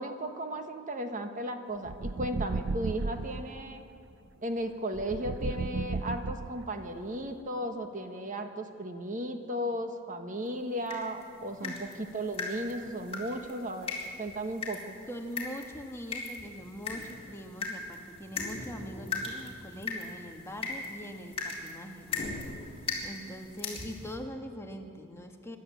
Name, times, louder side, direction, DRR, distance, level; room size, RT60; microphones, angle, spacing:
voice 1, 0.0-3.8 4.4-13.9 14.2-14.9, right 1 dB, 40° right, 6 dB, 1.3 m, -35 dB
sound 1, 1.8-3.4 4.9-6.8, right 3 dB, 60° right, 0.6 m, -34 dB
sound 2, 10.9-24.2, left 4 dB, 30° left, 4.1 m, -39 dB
voice 2, 15.1-22.1 23.0-25.6, equal, 10° left, 3 dB, 1.3 m, -42 dB
26.5 x 12.0 x 8.4 m, 2.4 s
head